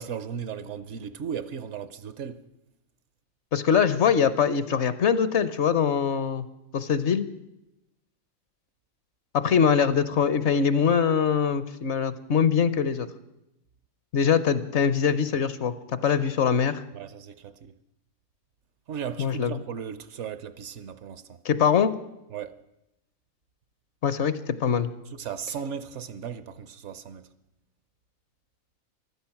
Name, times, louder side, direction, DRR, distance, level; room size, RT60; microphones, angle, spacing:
voice 1, 0.0-2.4 16.9-17.7 18.9-21.4 22.3-22.6 25.1-27.3, right 7 dB, 65° right, 0.9 m, -36 dB
voice 2, 3.5-6.5 6.7-7.3 9.3-13.1 14.1-16.8 19.2-19.6 21.4-21.9 24.0-24.9, left 7 dB, 60° left, 0.9 m, -23 dB
15.0 x 12.5 x 5.8 m
omnidirectional pair, 1.4 m